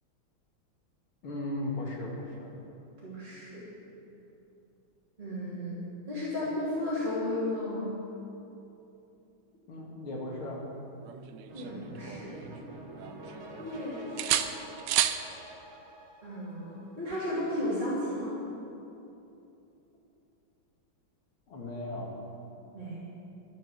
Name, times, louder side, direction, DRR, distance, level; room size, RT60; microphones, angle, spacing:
voice 1, 1.2-2.5 9.7-10.7 21.5-22.2, left 1 dB, 80° left, -1 dB, 2.8 m, -36 dB
voice 2, 3.0-3.6 5.2-5.8 6.1-7.9 11.5-12.4 13.6-14.5 16.2-18.3 22.7-23.0, left 1 dB, 20° right, -11 dB, 3.2 m, -34 dB
sound 1, 11.0-12.6 13.0-13.8 14.2-15.2 17.1-17.3, right 11 dB, 75° right, 1.0 m, -32 dB
sound 2, 11.5-16.9, right 1 dB, 45° right, 2.1 m, -46 dB
12.0 x 10.5 x 6.5 m, 2.9 s
omnidirectional pair, 2.3 m